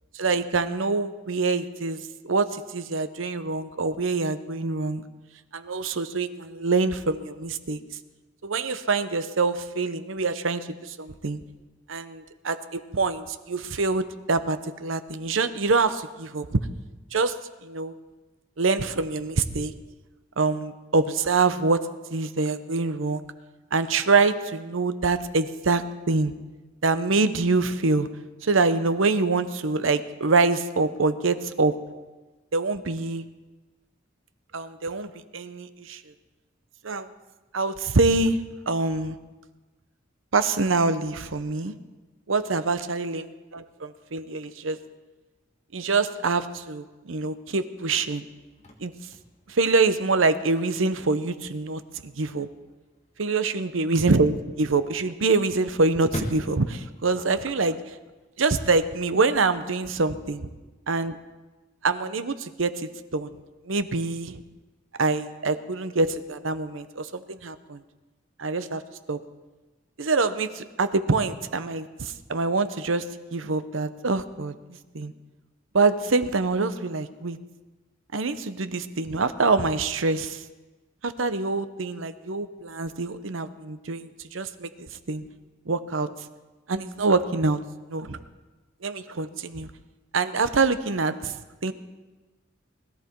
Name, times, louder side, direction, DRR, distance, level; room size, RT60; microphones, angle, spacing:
voice 1, 0.1-5.0 5.5-7.8 8.4-11.4 11.9-16.6 17.1-17.4 17.6-17.9 18.6-19.7 20.4-23.2 23.7-26.3 26.8-28.1 28.4-31.8 32.5-33.3 34.5-36.0 36.8-37.1 37.5-38.4 38.7-39.2 40.3-41.7 42.3-44.8 45.7-48.3 48.8-48.9 49.5-52.5 53.2-57.9 58.4-60.4 60.9-61.2 61.8-63.3 63.7-64.4 65.0-67.8 68.4-68.8 69.1-69.2 70.0-73.1 73.3-75.1 75.7-77.4 78.1-80.4 81.0-85.2 85.7-86.1 86.7-87.6 87.9-88.2 88.8-89.7 90.1-91.7, right 3 dB, 90° right, 12 dB, 0.9 m, -25 dB
Chirp tweet / Car / Slam, 48.3-58.3, left 1 dB, 35° left, 1.7 m, -44 dB
20.5 x 14.0 x 4.6 m, 1.2 s
head